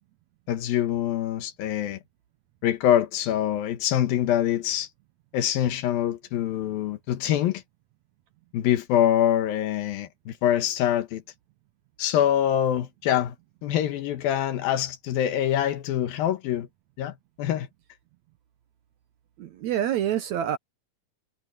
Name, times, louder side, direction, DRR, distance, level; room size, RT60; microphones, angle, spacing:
voice 1, 0.5-2.0 2.6-4.9 5.3-7.6 8.5-11.2 12.0-13.4 13.6-16.7 17.0-17.7, left 11 dB, 85° left, 3.1 m, -25 dB
voice 2, 19.4-20.6, right 10 dB, 70° right, 1.9 m, -27 dB
omnidirectional pair, 4.0 m